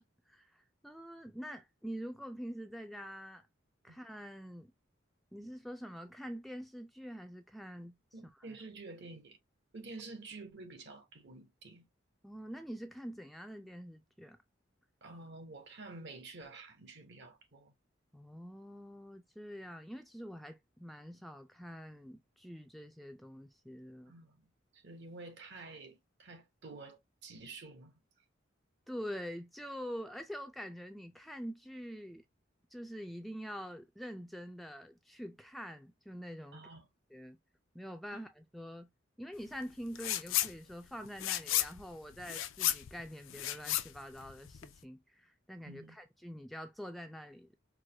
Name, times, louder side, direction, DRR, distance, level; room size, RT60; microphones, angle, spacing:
voice 1, 0.0-3.5 3.8-4.7 5.3-8.0 8.3-8.6 12.2-14.4 18.1-24.2 28.9-32.2 32.7-36.6 37.1-37.4 37.7-38.9 39.2-47.5, equal, ahead, 0.3 m, -45 dB
voice 2, 8.1-9.4 9.7-11.9 15.0-17.7 24.1-28.0 36.5-36.9 38.1-38.3 45.6-46.0, right 3 dB, 60° right, 1.0 m, -50 dB
sound 1, 39.9-40.5 40.8-44.8, left 13 dB, 85° left, 0.4 m, -34 dB
4.7 x 2.2 x 2.6 m
head